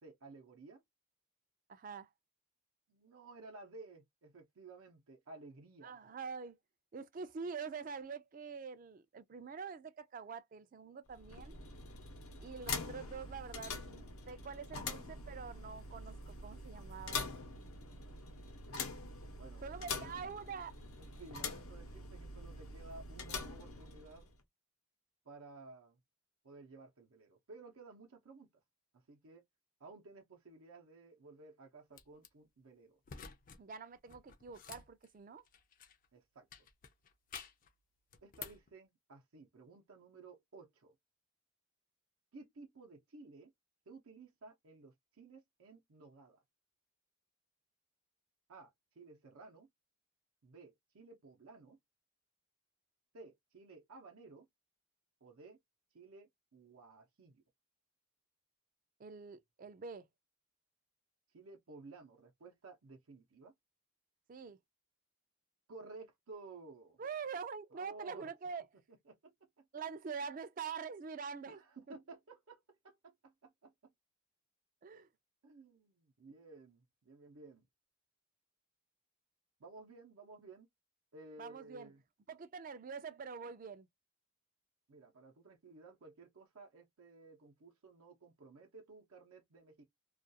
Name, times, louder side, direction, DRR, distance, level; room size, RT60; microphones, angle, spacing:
voice 1, 0.0-0.8 2.9-6.0 14.9-15.0 17.8-18.2 19.4-20.1 21.0-24.3 25.2-26.0 26.4-28.5 28.9-29.4 29.8-33.0 36.1-36.7 38.2-40.9 42.3-43.5 43.9-46.4 48.5-49.7 50.4-51.8 53.1-54.5 55.2-55.6 55.9-57.4 61.3-63.5 65.7-67.0 67.7-68.3 68.9-69.2 71.5-73.9 75.4-77.7 79.6-80.7 81.1-82.0 84.9-89.8, right 3 dB, 85° right, 0.7 m, -55 dB
voice 2, 1.7-2.1 5.8-6.6 6.9-11.6 12.4-17.2 19.6-20.7 33.6-35.4 59.0-60.1 64.3-64.6 67.0-68.6 69.7-71.6 71.9-72.0 74.8-75.1 81.4-81.9 82.3-83.9, right 5 dB, 40° right, 0.3 m, -45 dB
sound 1, 11.1-24.4, left 4 dB, 85° left, 0.7 m, -44 dB
sound 2, 31.9-32.3 33.0-33.6 33.9-36.1 36.5-37.7 38.1-38.7, left 7 dB, 40° left, 0.3 m, -51 dB
2.4 x 2.3 x 2.6 m
head